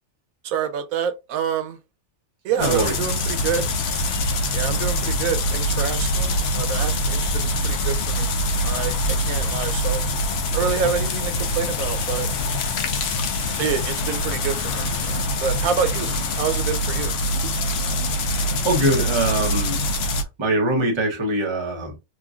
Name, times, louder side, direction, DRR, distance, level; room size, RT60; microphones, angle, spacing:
voice 1, 0.4-1.8 2.4-3.7 4.5-8.3 8.6-10.0 10.5-12.3 13.6-17.2, right 7 dB, 90° right, 1.0 m, -27 dB
sound 1, 2.6-20.2, left 1 dB, 60° left, 0.7 m, -24 dB
voice 2, 2.6-2.9 18.6-19.8 20.4-22.0, right 1 dB, 25° right, 0.8 m, -22 dB
3.0 x 2.5 x 2.4 m
omnidirectional pair, 1.4 m